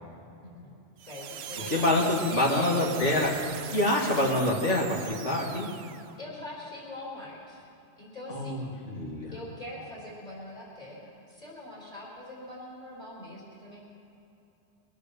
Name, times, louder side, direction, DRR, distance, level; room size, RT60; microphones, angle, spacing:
voice 1, 0.4-0.7 1.1-3.4 6.2-7.6 8.0-8.6 9.3-13.8, left 1 dB, 40° left, -7 dB, 4.2 m, -43 dB
sound 1, 1.0-6.2, right 9 dB, 65° right, 0.8 m, -41 dB
voice 2, 1.7-3.3 3.7-5.7 8.3-9.3, left 1 dB, 80° left, -3 dB, 2.5 m, -26 dB
22.5 x 8.2 x 6.9 m, 2.8 s
omnidirectional pair, 1.2 m